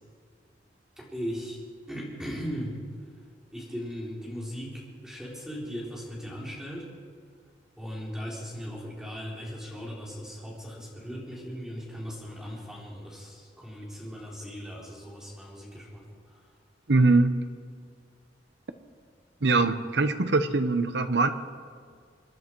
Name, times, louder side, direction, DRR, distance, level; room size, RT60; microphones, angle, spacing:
voice 1, 1.0-1.6 1.9-2.8 3.5-6.9 7.8-16.5, equal, 5° right, -4 dB, 3.9 m, -38 dB
voice 2, 16.9-17.4 19.4-21.3, right 3 dB, 70° right, 10 dB, 1.0 m, -22 dB
26.5 x 11.0 x 4.7 m, 2.1 s
head